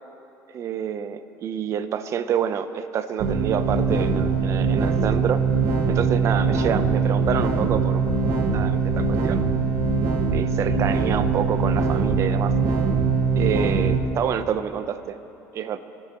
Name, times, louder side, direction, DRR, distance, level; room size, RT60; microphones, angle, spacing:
voice 1, 0.5-5.4 5.9-8.0 8.5-9.5 10.3-12.5 13.4-15.2 15.5-15.8, right 8 dB, 55° right, 11 dB, 0.8 m, -27 dB
sound 1, 3.2-14.0, right 4 dB, 75° right, 1.5 m, -22 dB
26.5 x 14.0 x 3.1 m, 2.9 s
cardioid pair, 110°, 6 cm